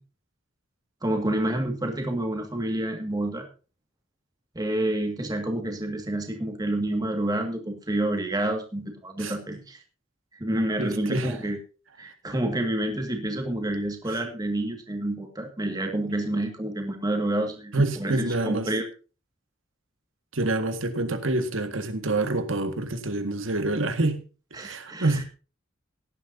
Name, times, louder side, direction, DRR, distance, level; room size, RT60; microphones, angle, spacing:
voice 1, 1.0-3.5 4.6-9.8 10.4-11.6 12.0-17.7 18.0-18.8 24.6-25.2, right 1 dB, 20° right, 2.0 m, -28 dB
voice 2, 10.8-11.4 14.1-14.2 17.7-18.7 20.3-24.2 24.5-25.2, right 2 dB, 90° right, 1.8 m, -27 dB
17.5 x 11.0 x 2.8 m
head